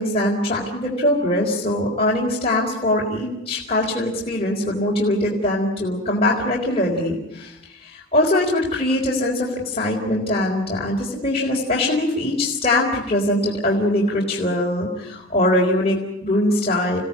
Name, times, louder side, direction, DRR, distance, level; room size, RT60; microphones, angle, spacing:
voice 1, 0.0-17.0, left 1 dB, 30° left, -3 dB, 4.3 m, -22 dB
29.0 x 17.0 x 8.6 m, 0.92 s
head